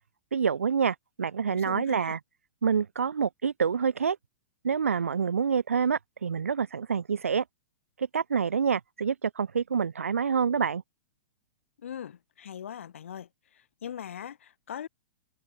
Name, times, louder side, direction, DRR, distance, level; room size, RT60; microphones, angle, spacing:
voice 1, 0.3-2.2 2.6-4.2 4.6-7.4 8.0-10.8, right 6 dB, 85° right, 0.4 m, -27 dB
voice 2, 1.5-2.2 11.8-14.9, left 9 dB, 70° left, 1.0 m, -41 dB
figure-of-eight pair, 110°, 7 cm